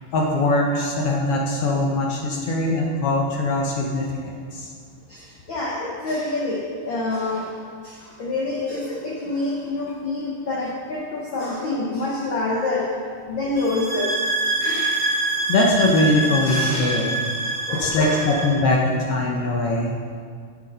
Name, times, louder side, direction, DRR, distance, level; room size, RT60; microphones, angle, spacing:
voice 1, 0.1-4.7 15.5-17.1 17.7-19.9, left 2 dB, 70° left, -1 dB, 1.4 m, -21 dB
voice 2, 5.1-7.5 7.8-12.9 13.3-14.1 14.6-15.0 16.4-17.1 17.7-18.3, left 2 dB, 85° left, -3 dB, 1.0 m, -27 dB
sound 1, 13.6-18.6, right 2 dB, 70° right, 0.9 m, -25 dB
8.8 x 8.2 x 5.5 m, 2.1 s
omnidirectional pair, 3.8 m